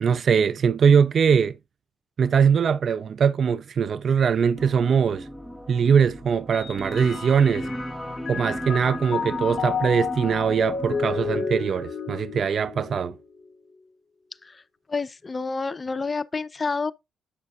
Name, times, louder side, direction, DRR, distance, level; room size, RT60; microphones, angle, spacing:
voice 1, 0.0-1.6 2.2-5.3 5.7-7.7 8.3-13.1, right 6 dB, 50° right, 0.3 m, -21 dB
sound 1, 4.6-11.4, equal, ahead, 1.3 m, -36 dB
Mallet percussion, 6.5-7.9 8.2-13.7, left 5 dB, 50° left, 0.9 m, -31 dB
voice 2, 14.9-16.9, left 4 dB, 25° left, 0.6 m, -29 dB
8.5 x 6.4 x 2.5 m
cardioid pair, 90°, 0 cm